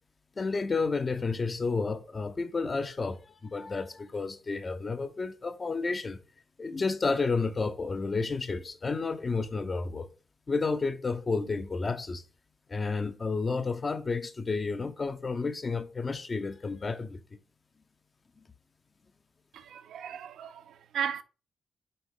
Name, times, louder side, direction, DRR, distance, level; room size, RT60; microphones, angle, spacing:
voice 1, 0.4-6.2 6.6-10.1 10.5-12.2 12.7-17.2, left 4 dB, 40° left, 1.0 m, -31 dB
voice 2, 19.5-21.2, right 8 dB, 75° right, 0.6 m, -36 dB
6.8 x 4.6 x 3.8 m
supercardioid pair, 45°, 0 cm